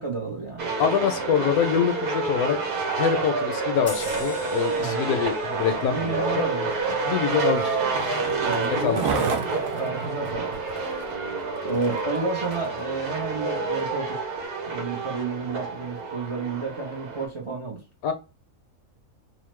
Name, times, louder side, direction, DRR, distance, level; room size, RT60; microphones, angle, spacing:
voice 1, 0.0-0.7 4.7-5.1 5.9-6.7 8.4-9.4 9.8-10.5 11.6-14.2 14.7-17.8, right 4 dB, 45° right, 0.4 m, -31 dB
sound 1, 0.6-17.3, right 3 dB, 85° right, 1.3 m, -28 dB
voice 2, 0.8-2.6 3.0-6.4 7.0-7.8 8.8-9.0 18.0-18.1, left 7 dB, 75° left, 1.0 m, -25 dB
sound 2, 3.9-8.8 9.2-9.4, left 3 dB, 30° left, 0.5 m, -43 dB
Skateboard, 4.0-12.8 13.4-13.5, right 5 dB, 60° right, 0.9 m, -36 dB
2.9 x 2.1 x 3.1 m
omnidirectional pair, 1.6 m